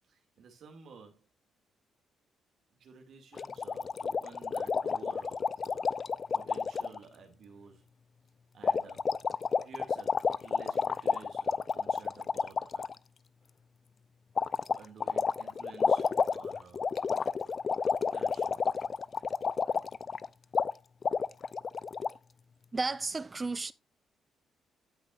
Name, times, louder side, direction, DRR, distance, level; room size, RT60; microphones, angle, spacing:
voice 1, 0.1-1.3 2.8-5.9 6.3-7.8 8.5-9.2 9.6-12.9 14.7-17.1 18.1-18.7, right 5 dB, 65° right, 2.3 m, -53 dB
sound 1, 3.4-7.0 8.6-12.9 14.4-20.3 20.5-20.7 21.0-22.1, left 5 dB, 40° left, 0.5 m, -30 dB
voice 2, 22.7-23.7, right 3 dB, 25° right, 0.7 m, -33 dB
16.5 x 6.0 x 2.5 m
cardioid pair, 90°, 0 cm